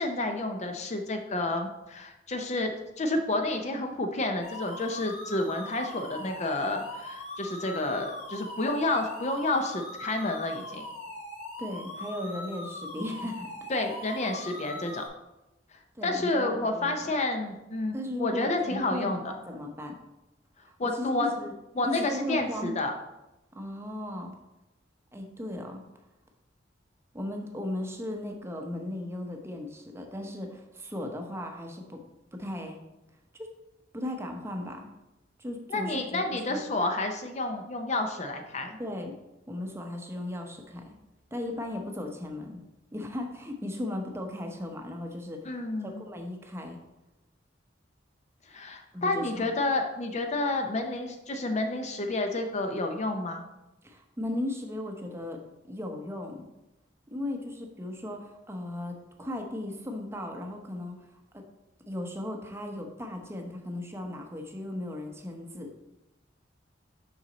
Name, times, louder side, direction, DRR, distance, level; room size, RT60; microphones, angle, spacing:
voice 1, 0.0-10.8 13.7-15.0 15.7-19.3 20.8-21.3 21.8-22.9 35.7-38.8 45.4-46.0 48.5-53.4, left 2 dB, 40° left, 5 dB, 0.6 m, -30 dB
sound 1, 4.4-15.1, left 2 dB, 85° left, 2.1 m, -41 dB
voice 2, 11.6-13.5 15.9-17.1 17.9-20.0 20.7-21.5 21.8-22.7 23.5-24.3 25.1-25.8 27.1-32.0 32.3-32.8 33.3-33.5 33.9-34.9 35.4-36.6 38.8-39.1 39.5-40.9 41.3-42.6 42.9-45.5 45.8-46.8 48.9-49.5 53.8-56.5 57.1-61.1 61.3-61.4 61.9-65.8, left 1 dB, 15° right, 3 dB, 0.7 m, -36 dB
5.9 x 5.5 x 3.9 m, 0.95 s
head